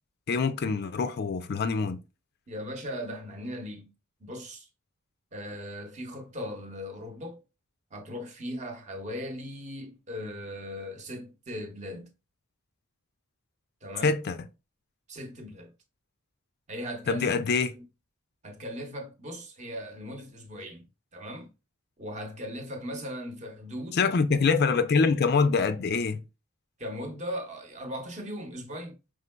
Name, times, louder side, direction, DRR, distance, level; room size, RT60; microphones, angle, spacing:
voice 1, 0.3-2.0 14.0-14.4 17.1-17.7 23.9-26.2, left 4 dB, 50° left, 0.4 m, -25 dB
voice 2, 2.5-3.9 4.2-4.7 5.3-7.4 7.9-12.1 13.8-14.1 15.1-15.7 16.7-17.3 18.4-20.8 21.1-21.5 22.0-24.0 26.8-29.0, equal, 35° right, 0.8 m, -38 dB
5.0 x 3.6 x 2.2 m
head